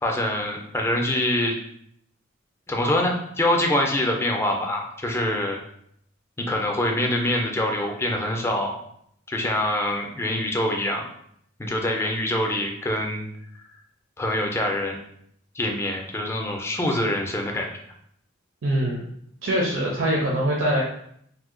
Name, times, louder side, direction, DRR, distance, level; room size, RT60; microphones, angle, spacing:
voice 1, 0.0-1.6 2.7-5.6 6.4-8.7 9.3-11.0 11.6-13.3 14.2-15.0 15.6-17.7, left 1 dB, 15° left, 1 dB, 0.4 m, -25 dB
voice 2, 18.6-19.0 19.4-20.8, right 1 dB, 75° right, -3 dB, 0.6 m, -23 dB
2.7 x 2.1 x 3.7 m, 0.69 s
head